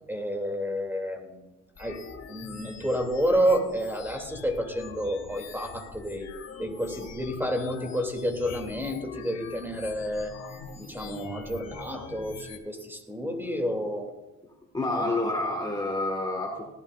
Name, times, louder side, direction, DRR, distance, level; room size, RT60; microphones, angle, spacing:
voice 1, 0.1-1.4 1.8-6.3 6.6-10.3 10.7-14.1 15.0-15.2, equal, 5° right, 3 dB, 2.8 m, -30 dB
sound 1, 1.8-12.6, left 5 dB, 55° left, 2.3 m, -44 dB
voice 2, 14.7-16.6, left 2 dB, 15° left, 1 dB, 1.8 m, -29 dB
18.5 x 15.5 x 2.6 m, 1.0 s
cardioid pair, 90°, 30 cm